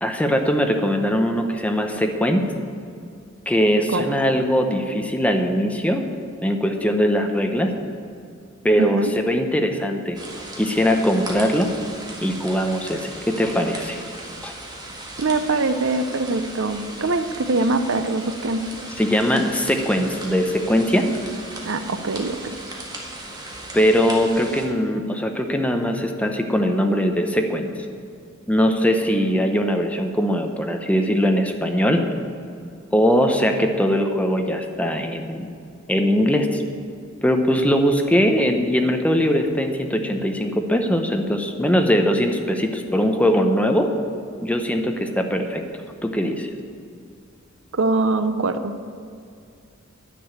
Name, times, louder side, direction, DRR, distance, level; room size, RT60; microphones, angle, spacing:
voice 1, 0.0-2.5 3.5-6.0 6.4-7.7 8.6-10.2 10.6-11.7 12.2-14.0 14.4-14.5 19.0-21.1 23.7-27.7 28.5-32.0 32.9-35.5 35.9-36.6 37.2-43.9 44.4-45.6 46.0-46.5, equal, 5° left, 5 dB, 0.8 m, -21 dB
voice 2, 8.8-9.1 15.2-18.6 21.6-22.4 47.7-48.7, right 3 dB, 65° right, 10 dB, 0.7 m, -23 dB
sound 1, 10.1-24.7, right 2 dB, 20° right, 1.7 m, -37 dB
10.0 x 6.9 x 8.9 m, 2.4 s
head